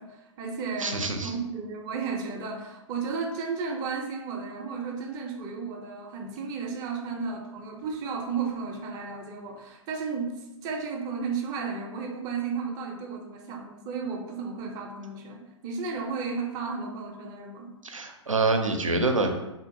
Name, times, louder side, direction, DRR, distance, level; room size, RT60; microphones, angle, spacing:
voice 1, 0.0-17.7, right 5 dB, 25° right, 2 dB, 0.4 m, -33 dB
voice 2, 0.8-1.3 17.8-19.3, right 3 dB, 85° right, 5 dB, 0.5 m, -26 dB
3.7 x 2.4 x 2.6 m, 0.95 s
figure-of-eight pair, 110°, 16 cm